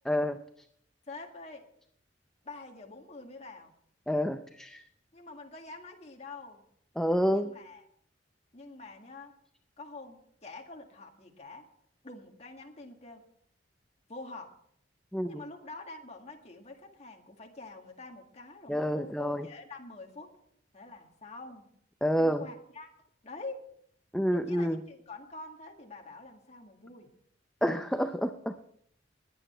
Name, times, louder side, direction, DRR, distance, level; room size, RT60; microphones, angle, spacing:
voice 1, 0.1-0.4 4.1-4.8 7.0-7.5 15.1-15.4 18.7-19.5 22.0-22.4 24.1-24.8 27.6-28.5, equal, 5° left, 7 dB, 0.5 m, -28 dB
voice 2, 1.1-1.7 2.4-3.7 5.1-6.6 7.3-7.8 8.5-9.3 9.8-11.7 12.0-13.2 14.1-14.5 15.2-20.3 20.7-21.7 22.2-22.9 23.2-23.7 24.3-27.1, left 3 dB, 35° left, 2 dB, 1.9 m, -46 dB
20.5 x 8.7 x 4.4 m, 0.67 s
head